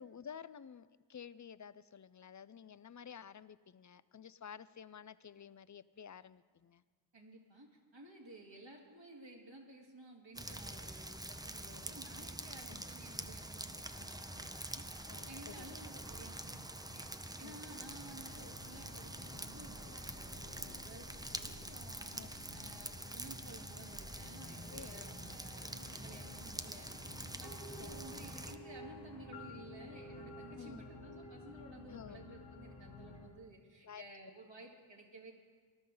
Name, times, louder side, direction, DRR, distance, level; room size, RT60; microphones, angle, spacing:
voice 1, 0.0-6.8 12.6-12.9 15.1-15.8 17.4-17.7 22.1-22.3 22.8-22.9 24.7-25.1 27.8-28.2 30.6-30.8 31.9-32.2 33.8-34.0, left 7 dB, 40° left, 16 dB, 0.4 m, -52 dB
voice 2, 7.1-14.9 15.3-27.1 27.4-35.3, right 1 dB, 70° right, -2 dB, 2.5 m, -55 dB
sound 1, 10.3-28.5, right 1 dB, 10° right, 0.6 m, -46 dB
sound 2, 13.8-29.4, left 4 dB, 65° left, 1.1 m, -65 dB
sound 3, 17.8-33.3, left 2 dB, 90° left, 2.5 m, -53 dB
20.0 x 12.5 x 3.9 m, 1.5 s
wide cardioid pair, 45°, 46 cm